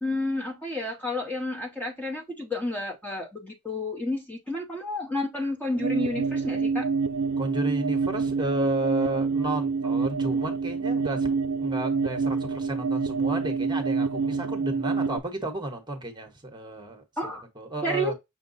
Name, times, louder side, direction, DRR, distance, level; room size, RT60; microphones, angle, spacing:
voice 1, 0.0-6.9 17.2-17.4 17.8-18.1, left 1 dB, 10° left, 0.8 m, -31 dB
sound 1, 5.8-15.2, right 4 dB, 75° right, 0.4 m, -27 dB
voice 2, 7.4-11.3 11.6-17.0 17.6-18.1, right 1 dB, 20° right, 1.0 m, -32 dB
6.2 x 2.2 x 3.9 m
head